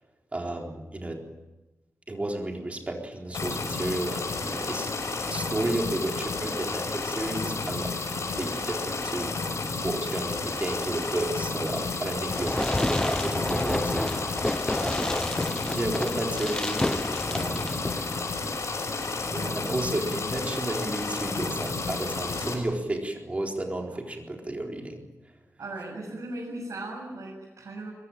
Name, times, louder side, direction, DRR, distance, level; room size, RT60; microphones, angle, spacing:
voice 1, 0.3-1.3 2.1-4.9 5.3-14.5 14.8-15.4 15.7-17.7 19.3-25.0, right 1 dB, 25° right, 1 dB, 4.1 m, -32 dB
sound 1, 3.3-22.5, left 3 dB, 70° left, 6.3 m, -32 dB
Fireworks, 12.3-18.3, left 1 dB, 15° left, 0.8 m, -30 dB
voice 2, 25.6-27.9, right 2 dB, 75° right, -3 dB, 7.4 m, -37 dB
23.5 x 21.5 x 9.1 m, 1.1 s
wide cardioid pair, 155°, 5 cm